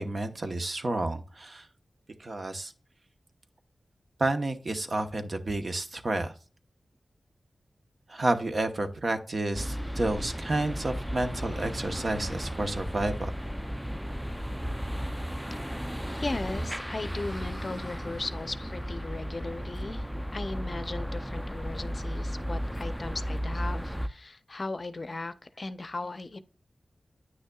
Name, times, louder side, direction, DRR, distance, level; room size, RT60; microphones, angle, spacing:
voice 1, 0.0-1.7 2.2-2.7 4.2-6.3 8.1-13.3, right 2 dB, 55° right, 0.9 m, -30 dB
sound 1, 9.5-24.1, equal, 5° right, 0.4 m, -34 dB
voice 2, 16.1-20.0 20.3-26.4, left 2 dB, 45° left, 0.5 m, -37 dB
9.4 x 6.4 x 2.3 m
wide cardioid pair, 65°, 0 cm